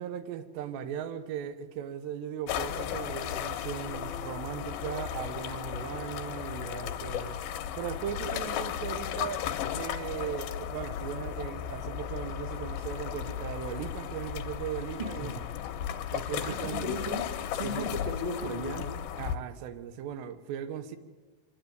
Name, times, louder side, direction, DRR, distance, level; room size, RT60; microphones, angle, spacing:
voice 1, 0.0-7.4 7.8-9.5 9.7-15.4 16.1-16.9 17.6-17.9 19.2-21.0, right 9 dB, 75° right, 3.2 m, -38 dB
sound 1, 2.5-19.4, left 10 dB, 70° left, 2.6 m, -35 dB
voice 2, 16.4-17.3 17.5-18.9, left 1 dB, 15° right, 2.3 m, -35 dB
24.0 x 12.5 x 9.4 m
omnidirectional pair, 5.2 m